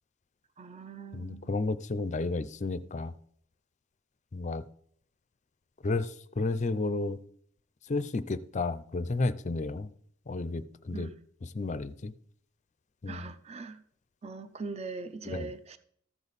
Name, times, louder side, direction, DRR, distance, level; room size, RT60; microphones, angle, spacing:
voice 1, 0.6-1.6 10.9-11.2 13.1-13.8 14.2-15.8, right 4 dB, 30° right, 0.5 m, -41 dB
voice 2, 1.1-3.1 4.3-4.6 5.8-7.2 7.9-9.9 10.3-11.1 11.5-12.1 13.0-13.3 15.3-15.5, left 3 dB, 35° left, 0.5 m, -32 dB
14.0 x 6.9 x 4.1 m
head